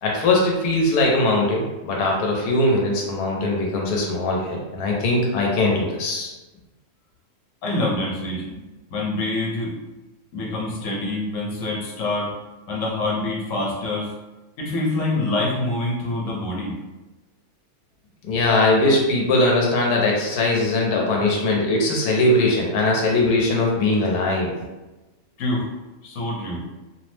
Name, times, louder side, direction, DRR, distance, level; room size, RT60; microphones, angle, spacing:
voice 1, 0.0-6.3 18.2-24.5, left 2 dB, 90° left, -1 dB, 1.1 m, -20 dB
voice 2, 7.6-8.6 8.9-9.7 10.3-12.3 12.7-14.1 14.6-16.7 25.4-25.7 26.0-26.6, left 2 dB, 65° left, -3 dB, 1.1 m, -26 dB
2.7 x 2.0 x 3.1 m, 1.1 s
omnidirectional pair, 1.6 m